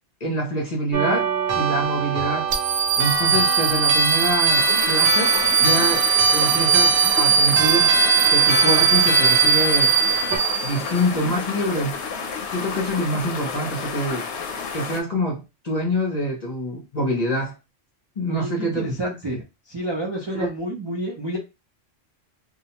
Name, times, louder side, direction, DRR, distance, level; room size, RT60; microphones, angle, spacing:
voice 1, 0.2-1.3 1.6-2.6 3.0-5.3 5.6-6.1 6.3-8.0 8.3-9.9 10.6-12.0 12.5-14.2 14.7-17.5 18.2-18.9 20.4-20.5, equal, 40° left, -1 dB, 0.7 m, -25 dB
sound 1, 0.9-10.4, right 4 dB, 55° right, 0.9 m, -25 dB
sound 2, 2.5-11.0, right 6 dB, 85° right, 0.9 m, -19 dB
sound 3, 4.5-15.0, left 5 dB, 70° left, 0.8 m, -31 dB
voice 2, 18.3-19.4 19.7-21.4, right 1 dB, 35° right, -2 dB, 0.4 m, -29 dB
2.5 x 2.1 x 2.8 m, 0.25 s
omnidirectional pair, 1.2 m